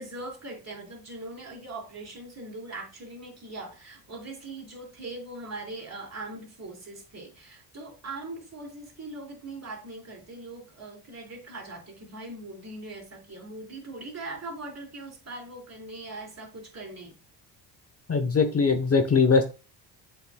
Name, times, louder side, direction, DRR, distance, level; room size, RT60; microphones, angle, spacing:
voice 1, 0.0-17.2, right 2 dB, 35° right, 1 dB, 4.0 m, -41 dB
voice 2, 18.1-19.4, left 5 dB, 30° left, 8 dB, 1.0 m, -21 dB
7.9 x 5.8 x 2.2 m, 0.32 s
supercardioid pair, 65°, 47 cm